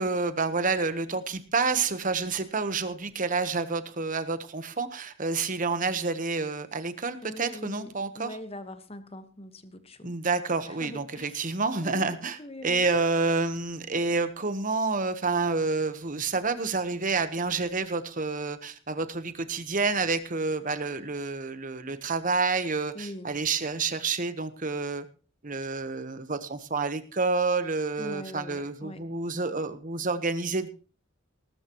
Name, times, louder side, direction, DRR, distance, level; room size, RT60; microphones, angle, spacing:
voice 1, 0.0-8.3 10.0-25.0 25.4-30.7, right 4 dB, 40° right, 1.1 m, -29 dB
voice 2, 7.2-10.1 10.6-11.5 11.8-12.9 22.9-23.3 28.0-29.0, left 1 dB, 30° left, 1.3 m, -42 dB
18.5 x 13.0 x 3.0 m
head